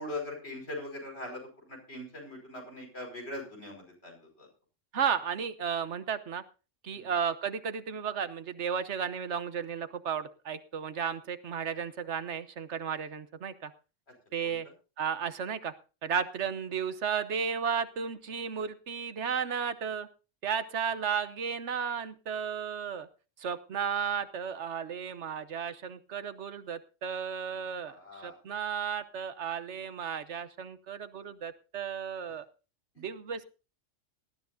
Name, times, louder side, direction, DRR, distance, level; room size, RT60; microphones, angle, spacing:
voice 1, 0.0-4.5 6.9-7.1 14.4-14.6 27.8-28.4, left 1 dB, 60° left, 1 dB, 5.4 m, -41 dB
voice 2, 4.9-6.4 6.8-13.7 14.3-14.7 15.0-15.7 16.0-20.1 20.4-23.1 23.4-32.4 33.0-33.4, right 7 dB, 70° right, 13 dB, 1.2 m, -34 dB
19.0 x 13.0 x 2.6 m, 0.33 s
omnidirectional pair, 1.2 m